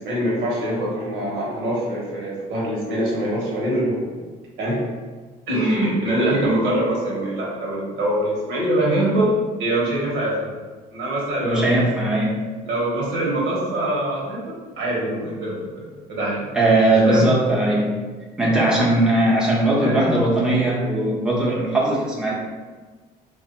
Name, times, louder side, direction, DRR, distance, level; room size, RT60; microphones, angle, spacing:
voice 1, 0.0-4.0 4.6-4.8 5.5-9.3 9.6-10.5 10.9-11.8 12.6-16.5 17.0-17.3 19.8-20.0, right 1 dB, 85° right, -5 dB, 1.2 m, -24 dB
voice 2, 11.4-12.4 16.5-17.9 18.4-22.3, right 1 dB, 5° right, -5 dB, 0.7 m, -19 dB
3.4 x 2.5 x 2.8 m, 1.4 s
cardioid pair, 110°, 17 cm